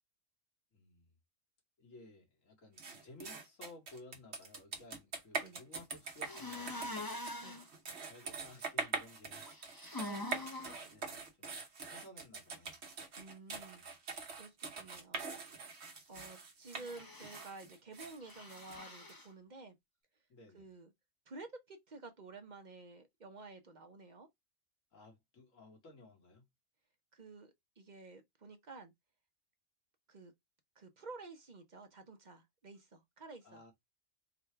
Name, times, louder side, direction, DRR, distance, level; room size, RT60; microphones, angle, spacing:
voice 1, 0.7-1.2 1.8-7.0 8.1-10.0 10.6-12.8 13.7-13.9 20.3-20.6 24.9-26.4 33.4-33.7, left 2 dB, 75° left, 1.9 m, -57 dB
sound 1, 2.8-19.1, right 4 dB, 55° right, 1.2 m, -44 dB
sound 2, 6.2-7.6 9.4-10.8 16.7-17.5 18.2-19.3, left 1 dB, 20° left, 0.6 m, -44 dB
voice 2, 10.0-10.8 13.2-13.8 14.4-15.3 16.1-19.8 20.5-20.9 21.3-24.3 27.1-28.9 30.1-30.3 30.8-33.6, right 3 dB, 40° right, 0.8 m, -52 dB
3.8 x 2.3 x 4.4 m
omnidirectional pair, 1.4 m